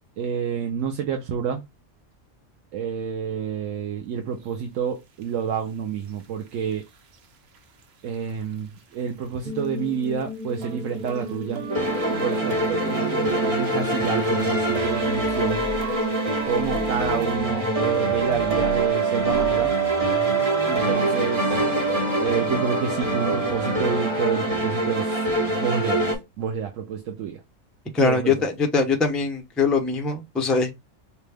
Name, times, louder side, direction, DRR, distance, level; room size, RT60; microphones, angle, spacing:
voice 1, 0.2-1.6 2.7-6.8 8.0-11.6 12.1-15.6 16.4-19.7 20.7-21.8 22.2-26.0 26.4-27.4 28.0-28.4, right 7 dB, 85° right, 1.1 m, -29 dB
sound 1, 4.4-4.5 5.2-5.3 6.1-7.3 7.5-7.8 8.1-9.7 10.0-17.4, right 7 dB, 60° right, 0.9 m, -38 dB
sound 2, 9.4-24.5, left 2 dB, 30° left, 0.9 m, -35 dB
sound 3, 11.7-26.2, right 2 dB, 30° right, 1.1 m, -24 dB
voice 2, 27.9-30.7, left 4 dB, ahead, 0.4 m, -22 dB
4.9 x 2.3 x 3.3 m
omnidirectional pair, 1.3 m